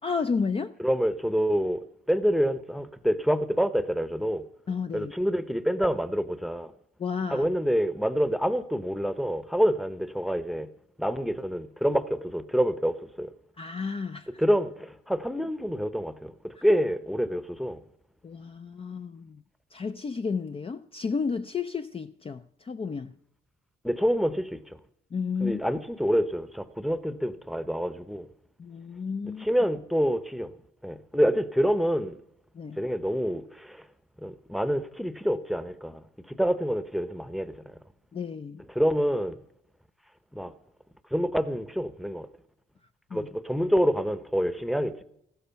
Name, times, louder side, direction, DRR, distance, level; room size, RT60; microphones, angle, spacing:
voice 1, 0.0-0.7 4.7-5.1 7.0-7.5 13.6-14.4 16.6-16.7 18.2-19.4 19.7-23.1 25.1-25.6 28.6-29.5 32.5-32.8 38.1-38.6 43.1-43.3, left 5 dB, 30° left, 0.5 m, -32 dB
voice 2, 0.8-4.4 4.9-6.7 7.3-10.7 11.0-13.3 14.4-17.8 23.8-24.8 25.4-28.3 29.4-30.5 30.8-32.2 32.8-33.9 34.2-37.8 38.7-39.4 40.3-40.5 41.1-42.3 43.1-45.0, equal, ahead, 0.9 m, -27 dB
15.0 x 12.5 x 5.8 m
cardioid pair, 90°, 20 cm